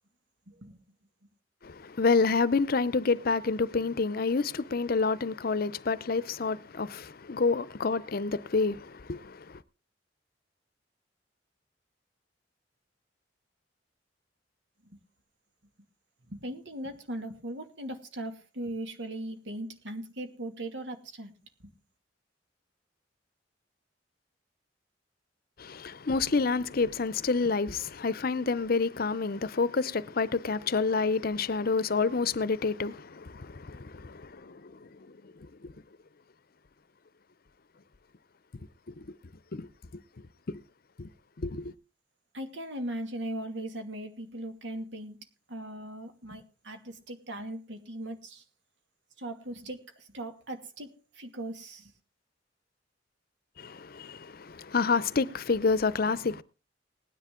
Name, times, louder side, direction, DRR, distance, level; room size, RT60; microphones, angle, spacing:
voice 1, 0.5-0.8 14.8-15.0 16.3-21.3 42.3-45.2 45.5-48.4 49.2-51.9, right 1 dB, 75° right, 2.4 m, -39 dB
voice 2, 1.6-9.6 25.6-34.7 39.0-39.1 39.5-39.7 41.0-41.1 41.4-41.7 53.6-56.4, left 4 dB, 55° left, 0.7 m, -28 dB
19.0 x 10.0 x 3.7 m
head